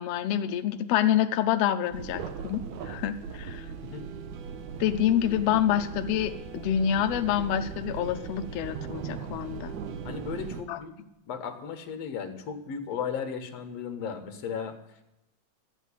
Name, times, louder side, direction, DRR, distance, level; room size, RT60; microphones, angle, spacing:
voice 1, 0.0-3.6 4.8-9.7 10.7-10.8, left 10 dB, 80° left, 8 dB, 1.4 m, -27 dB
sound 1, 1.9-10.6, right 6 dB, 75° right, 2.3 m, -38 dB
voice 2, 10.0-11.0 11.3-14.8, left 7 dB, 60° left, 7 dB, 2.3 m, -35 dB
13.5 x 8.3 x 9.8 m, 0.92 s
omnidirectional pair, 3.6 m